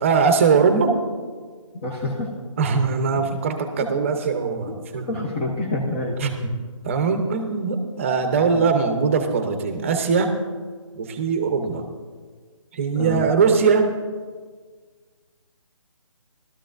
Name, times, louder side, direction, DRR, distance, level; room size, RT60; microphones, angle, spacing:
voice 1, 0.0-1.0 2.6-5.2 6.2-6.6 6.8-10.4 11.0-11.8 12.7-13.9, right 5 dB, 25° right, 7 dB, 0.8 m, -21 dB
voice 2, 1.8-2.3 3.1-3.2 3.9-4.1 4.7-4.8 5.1-6.2 8.5-8.6 13.0-13.2, left 2 dB, 20° left, -2 dB, 0.8 m, -27 dB
17.0 x 12.5 x 2.6 m, 1.5 s
hypercardioid pair, 165°, 17 cm